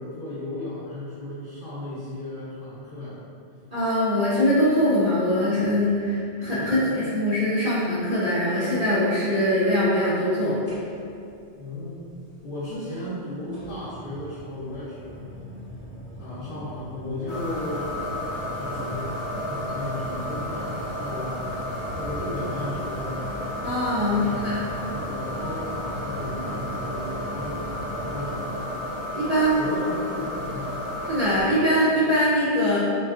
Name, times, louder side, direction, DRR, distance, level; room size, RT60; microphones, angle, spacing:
voice 1, 0.0-3.2 6.6-6.9 11.6-12.1 12.4-15.2 16.2-18.0 18.5-19.1 19.4-21.4 21.9-23.2 24.1-28.8 29.6-30.8, left 1 dB, 55° left, -11 dB, 0.7 m, -35 dB
voice 2, 3.7-10.6 23.6-24.6 29.1-29.6 31.1-32.8, equal, 60° right, -10 dB, 0.4 m, -22 dB
sound 1, 10.6-11.3 12.6-12.7 13.5-28.5, equal, 15° right, 0.7 m, -40 dB
sound 2, 17.3-31.5, left 1 dB, 75° left, 1.0 m, -32 dB
2.5 x 2.3 x 2.3 m, 2.5 s
omnidirectional pair, 1.2 m